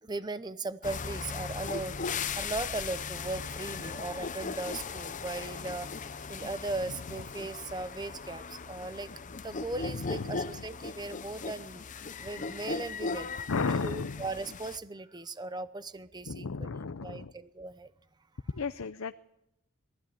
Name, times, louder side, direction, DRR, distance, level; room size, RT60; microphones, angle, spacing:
voice 1, 0.0-5.9 6.3-9.1 9.4-11.8 12.2-13.5 13.8-17.9, right 2 dB, 20° right, 13 dB, 0.7 m, -38 dB
sound 1, 0.8-14.8, left 5 dB, 35° left, 0.7 m, -38 dB
voice 2, 9.8-10.6 13.5-14.2 16.3-17.3 18.5-19.1, left 4 dB, 80° left, 10 dB, 0.7 m, -34 dB
20.0 x 14.5 x 9.3 m, 0.86 s
head